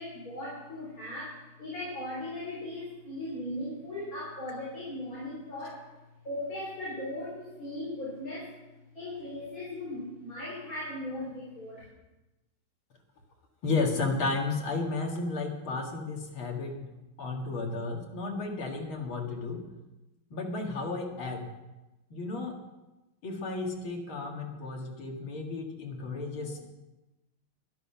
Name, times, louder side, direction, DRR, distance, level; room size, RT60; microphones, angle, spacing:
voice 1, 0.0-5.9 6.2-8.5 8.9-11.9, left 1 dB, 40° left, -6 dB, 4.1 m, -38 dB
voice 2, 13.6-16.8 17.2-19.7 20.3-21.5 22.1-22.6 23.2-26.6, left 3 dB, 75° left, 0 dB, 2.9 m, -33 dB
12.0 x 12.0 x 5.7 m, 1.0 s
omnidirectional pair, 2.3 m